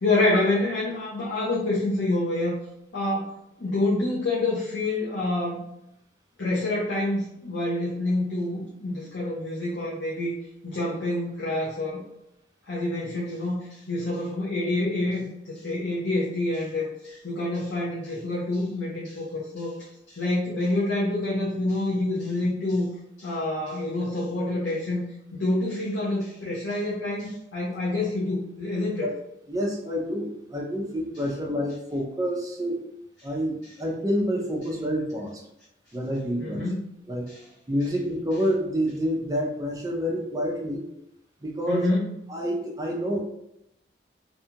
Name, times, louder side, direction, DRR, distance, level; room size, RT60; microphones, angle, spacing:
voice 1, 0.0-2.6 2.9-3.3 3.6-5.6 6.4-10.3 10.6-12.0 12.7-19.7 20.1-22.9 23.2-25.0 25.3-29.1 36.4-36.9 37.3-37.4 41.7-42.1, left 2 dB, 90° left, -7 dB, 0.7 m, -27 dB
voice 2, 29.5-32.8 33.2-35.4 35.9-36.6 37.1-37.3 37.7-40.8 41.4-41.9 42.3-43.2, equal, 20° right, 0 dB, 0.5 m, -28 dB
2.6 x 2.3 x 2.8 m, 0.80 s
head